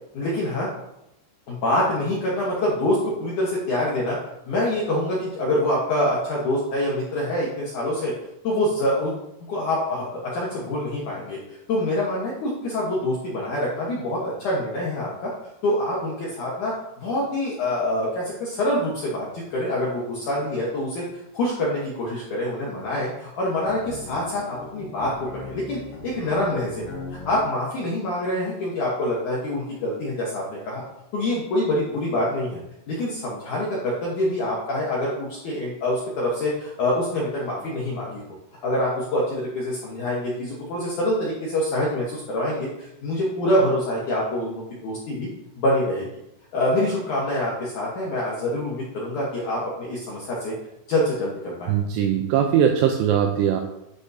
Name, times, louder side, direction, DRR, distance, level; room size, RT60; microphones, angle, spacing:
voice 1, 0.1-0.7 1.5-4.2 4.4-8.1 8.4-9.2 9.5-15.3 15.6-21.0 21.3-26.9 27.2-30.8 31.1-32.6 32.9-38.2 38.6-45.3 45.6-46.1 46.5-50.5 50.9-51.7, left 1 dB, 90° left, -5 dB, 1.7 m, -25 dB
sound 1, 23.6-27.4, left 3 dB, 55° left, 4.1 m, -39 dB
voice 2, 51.7-53.6, right 9 dB, 90° right, 4 dB, 2.4 m, -20 dB
10.5 x 5.3 x 2.7 m, 0.85 s
omnidirectional pair, 5.5 m